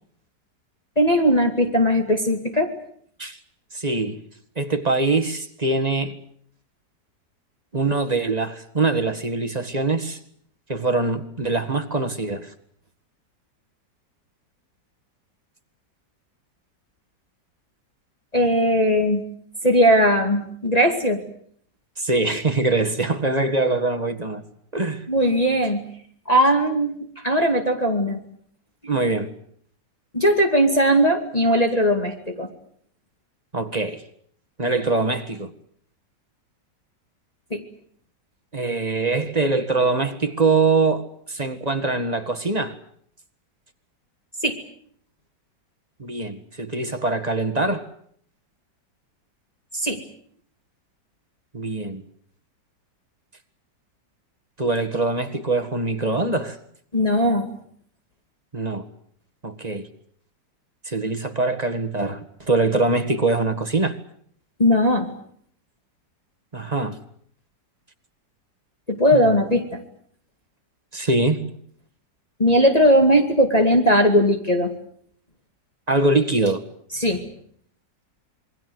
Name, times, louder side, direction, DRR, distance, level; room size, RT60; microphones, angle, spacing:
voice 1, 1.0-2.7 18.3-19.2 19.6-21.2 25.1-25.8 26.3-27.0 27.2-28.2 30.1-32.5 37.5-37.6 44.4-44.5 49.7-50.0 56.9-57.5 64.6-65.1 68.9-69.8 72.4-74.7 77.0-77.2, equal, 20° left, 2.5 m, -19 dB
voice 2, 3.7-4.2 4.5-6.2 7.7-10.2 10.7-12.5 22.0-24.4 24.7-25.1 28.9-29.3 33.5-34.0 34.6-35.5 38.5-42.7 46.0-47.9 51.5-52.0 54.6-56.6 58.5-58.8 59.4-59.9 60.8-64.0 66.5-67.0 69.1-69.2 70.9-71.4 75.9-76.6, right 3 dB, 25° right, 1.8 m, -23 dB
27.5 x 22.0 x 8.0 m
omnidirectional pair, 1.9 m